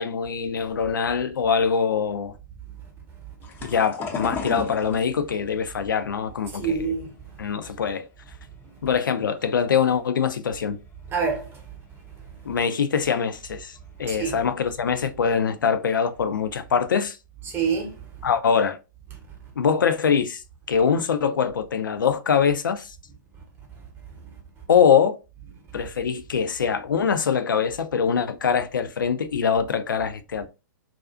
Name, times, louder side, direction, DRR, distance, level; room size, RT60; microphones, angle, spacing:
voice 1, 0.0-2.3 3.6-6.9 7.4-8.1 8.8-10.8 12.4-17.2 18.2-18.8 19.6-20.4 20.7-22.9 24.7-25.2 25.7-30.5, left 6 dB, 75° left, 0.4 m, -23 dB
sound 1, 3.4-8.5 8.9-9.8 10.3-10.6 10.9-11.0 12.2-12.3 12.8-12.9 13.5-13.6 13.7-14.1 15.3-15.5 16.0-16.1 16.5-17.0, left 4 dB, 20° left, 0.4 m, -36 dB
voice 2, 6.5-7.1 11.1-11.6 14.1-14.4 17.5-18.0, right 6 dB, 20° right, 0.8 m, -26 dB
2.4 x 2.3 x 2.3 m
figure-of-eight pair, 120°, 11 cm